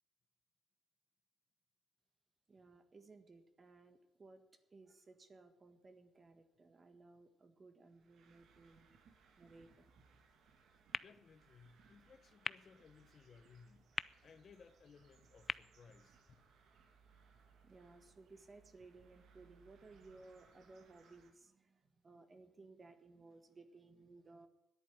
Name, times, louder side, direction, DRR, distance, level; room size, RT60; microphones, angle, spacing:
voice 1, 2.5-8.9 9.4-9.9 17.6-24.5, right 3 dB, 35° right, 9 dB, 1.6 m, -60 dB
sound 1, 7.9-21.3, right 5 dB, 70° right, 2.0 m, -68 dB
sound 2, 10.9-16.9, left 4 dB, 35° left, 0.4 m, -48 dB
voice 2, 11.0-13.9 14.2-16.5, left 5 dB, 50° left, 11 dB, 1.0 m, -62 dB
10.5 x 8.7 x 9.9 m, 0.94 s
cardioid pair, 90°, 0 cm